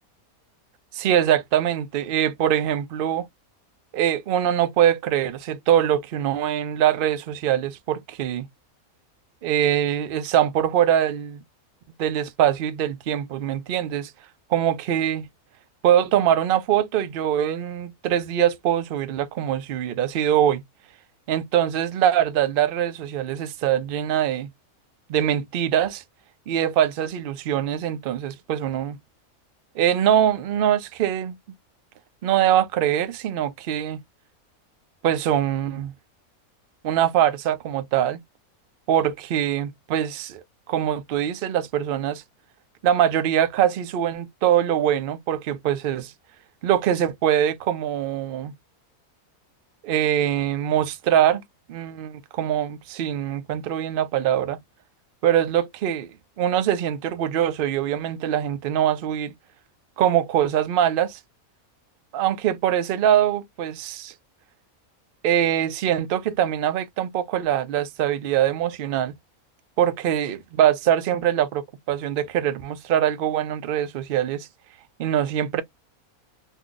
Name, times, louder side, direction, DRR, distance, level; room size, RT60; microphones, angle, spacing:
voice 1, 0.9-3.3 3.9-8.5 9.4-11.4 12.0-14.1 14.5-15.2 15.8-20.6 21.3-24.5 25.1-26.0 26.5-29.0 29.8-31.4 32.2-34.0 35.0-35.9 36.8-38.2 38.9-40.4 40.7-42.2 42.8-46.1 46.6-48.5 49.8-51.4 51.7-54.6 55.2-56.1 56.4-59.3 60.0-61.2 62.1-64.1 65.2-69.1 69.8-74.5 75.0-75.6, right 10 dB, 75° right, 0.5 m, -23 dB
2.8 x 2.3 x 3.7 m
omnidirectional pair, 1.6 m